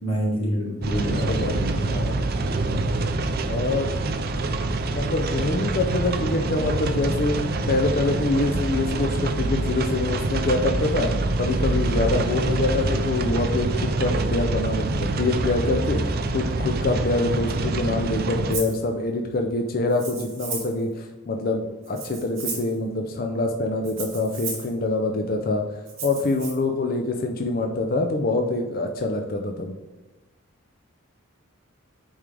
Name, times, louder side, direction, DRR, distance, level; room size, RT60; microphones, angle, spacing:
voice 1, 0.0-1.9, equal, 65° left, -3 dB, 2.0 m, -27 dB
sound 1, 0.8-18.6, right 2 dB, 45° right, 0.4 m, -25 dB
voice 2, 0.9-2.3 3.4-3.9 4.8-7.3 7.7-11.1 11.4-25.6 26.0-29.7, left 2 dB, 45° left, 3 dB, 0.5 m, -25 dB
Rattle (instrument), 18.5-18.8 19.9-20.8 21.8-22.7 23.8-24.7 25.9-26.5, right 5 dB, 65° right, 1.8 m, -34 dB
8.3 x 3.6 x 3.3 m, 1.1 s
head